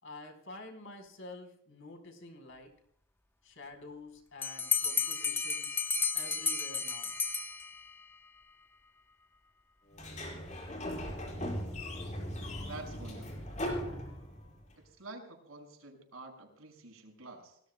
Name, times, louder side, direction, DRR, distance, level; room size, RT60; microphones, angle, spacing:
voice 1, 0.0-2.7 3.4-5.8 6.1-7.1, left 2 dB, 60° left, 4 dB, 4.2 m, -49 dB
Bell, 4.4-8.0, left 5 dB, 10° left, 0.7 m, -32 dB
Sliding door, 9.9-14.6, equal, 35° left, 5.4 m, -38 dB
voice 2, 12.7-13.5 14.8-17.6, right 2 dB, 80° right, 3 dB, 5.9 m, -48 dB
30.0 x 19.5 x 2.2 m, 0.68 s
head